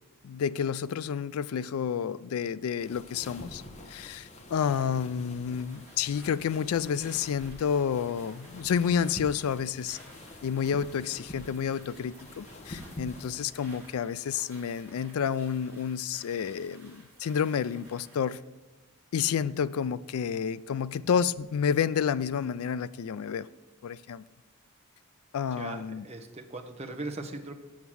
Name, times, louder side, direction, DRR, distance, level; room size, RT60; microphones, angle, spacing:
voice 1, 0.2-3.6 3.9-10.0 10.4-18.4 19.1-23.5 23.8-24.2 25.3-26.0, left 7 dB, 80° left, 0.4 m, -30 dB
sound 1, 2.8-14.0, left 1 dB, 30° left, 1.0 m, -47 dB
sound 2, 5.4-18.4, right 2 dB, 10° right, 2.9 m, -55 dB
voice 2, 25.5-27.5, right 2 dB, 30° right, 0.9 m, -39 dB
7.3 x 6.9 x 6.2 m
head